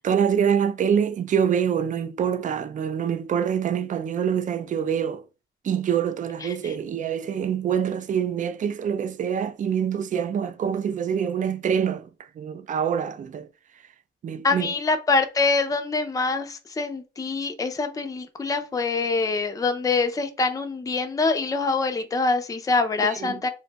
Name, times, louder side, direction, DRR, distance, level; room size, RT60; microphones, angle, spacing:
voice 1, 0.0-5.2 5.6-13.5 14.2-14.7 23.0-23.4, right 8 dB, 40° right, 0.4 m, -25 dB
voice 2, 14.4-23.5, left 4 dB, 15° left, 0.5 m, -24 dB
2.6 x 2.2 x 3.9 m
cardioid pair, 90°, 20 cm